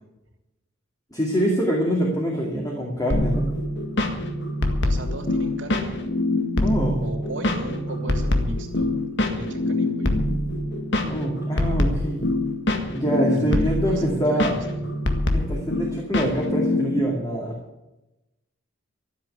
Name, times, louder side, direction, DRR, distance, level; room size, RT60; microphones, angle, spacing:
voice 1, 1.1-3.5 6.6-7.0 11.0-12.3 12.9-14.5 15.3-17.6, right 1 dB, 15° left, -2 dB, 2.4 m, -25 dB
sound 1, 3.1-17.0, left 1 dB, 60° left, 1.8 m, -25 dB
voice 2, 4.8-6.1 7.0-8.9 9.3-10.1 13.3-14.6, right 1 dB, 65° right, 2 dB, 3.1 m, -35 dB
13.5 x 8.0 x 9.6 m, 0.97 s
head